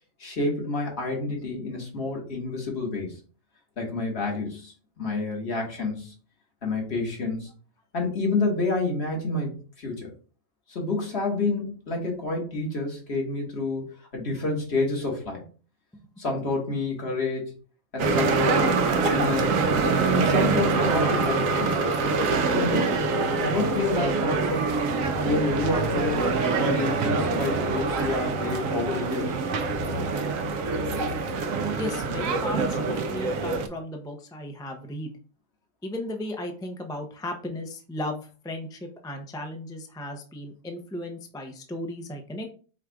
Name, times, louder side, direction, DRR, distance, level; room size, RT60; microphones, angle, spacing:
voice 1, 0.2-3.2 3.8-6.1 6.6-7.5 7.9-10.1 10.7-15.4 16.2-17.5 17.9-19.6 20.1-21.9 22.5-23.1 23.4-24.6 25.2-26.3 26.6-29.4, left 3 dB, 55° left, 0 dB, 1.7 m, -29 dB
sound 1, 18.0-33.7, right 4 dB, 80° right, 1.1 m, -25 dB
voice 2, 31.8-35.1 35.8-42.5, left 1 dB, 5° left, 3 dB, 0.3 m, -35 dB
4.8 x 2.4 x 4.6 m, 0.38 s
omnidirectional pair, 1.4 m